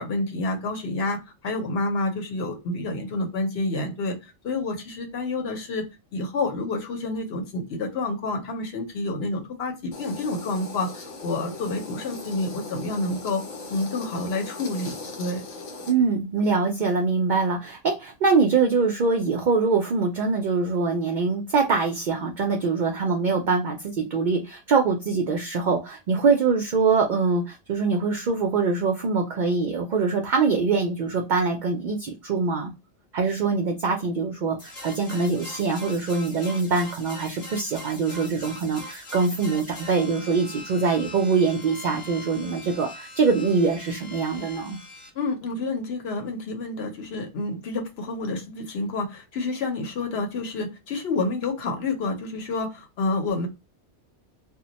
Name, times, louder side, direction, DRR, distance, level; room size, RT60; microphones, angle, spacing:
voice 1, 0.0-5.8 6.1-13.4 13.7-15.4 45.1-53.5, left 2 dB, 65° left, 0.9 m, -29 dB
sound 1, 9.9-15.9, left 3 dB, 90° left, 1.0 m, -39 dB
voice 2, 15.9-32.7 33.1-44.8, right 4 dB, 60° right, 0.5 m, -23 dB
sound 2, 34.6-45.1, left 1 dB, 35° left, 0.8 m, -42 dB
2.2 x 2.1 x 3.8 m
omnidirectional pair, 1.2 m